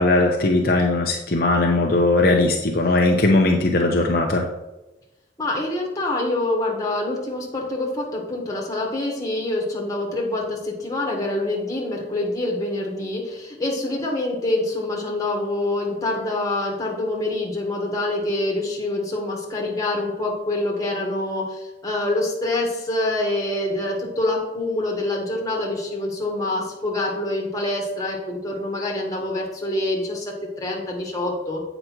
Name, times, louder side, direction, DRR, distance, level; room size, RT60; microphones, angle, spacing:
voice 1, 0.0-4.5, left 2 dB, 55° left, 0 dB, 0.7 m, -19 dB
voice 2, 5.4-31.6, left 2 dB, 20° left, -2 dB, 1.5 m, -26 dB
7.8 x 5.0 x 4.6 m, 1.0 s
head